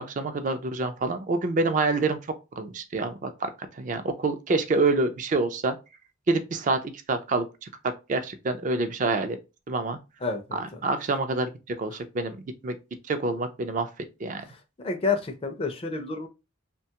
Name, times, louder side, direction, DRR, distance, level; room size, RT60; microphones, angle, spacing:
voice 1, 0.0-2.2 2.6-5.8 6.3-6.8 7.1-9.4 9.7-10.0 10.5-11.5 11.8-12.4 12.6-12.8 13.1-13.9 14.2-14.4, right 3 dB, 40° right, 0.4 m, -27 dB
voice 2, 10.2-10.8 14.8-16.3, left 4 dB, 30° left, 0.4 m, -29 dB
3.0 x 2.2 x 2.8 m
head